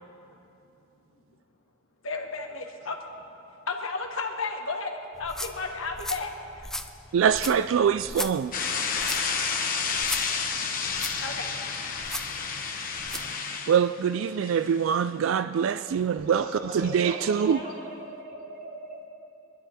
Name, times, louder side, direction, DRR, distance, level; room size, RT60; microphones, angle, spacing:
voice 1, 2.0-3.0 3.7-6.7 11.2-11.5, left 3 dB, 80° left, 1.5 m, -33 dB
sound 1, 5.1-13.3, left 1 dB, ahead, 0.5 m, -38 dB
voice 2, 7.1-8.5 13.1-13.2 13.7-16.5 16.7-17.6, right 7 dB, 70° right, 0.3 m, -24 dB
sound 2, 8.5-14.9, left 5 dB, 45° left, 1.2 m, -30 dB
voice 3, 16.2-19.1, equal, 45° right, 3.0 m, -38 dB
23.5 x 11.0 x 4.3 m
head